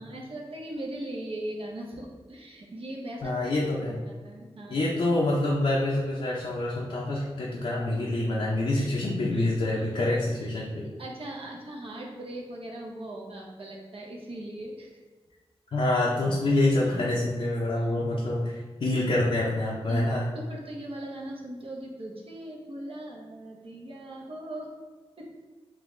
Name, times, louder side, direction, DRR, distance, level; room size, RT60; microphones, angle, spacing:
voice 1, 0.0-3.5 3.8-4.8 8.8-8.9 9.3-9.5 9.7-9.8 10.8-14.9 16.8-16.9 17.8-17.9 19.9-24.7 25.2-25.3, right 1 dB, 60° right, -2 dB, 0.8 m, -39 dB
voice 2, 3.2-4.0 4.7-10.8 15.7-20.3, left 1 dB, 65° left, -5 dB, 0.6 m, -26 dB
3.8 x 2.8 x 3.2 m, 1.4 s
wide cardioid pair, 70°, 10 cm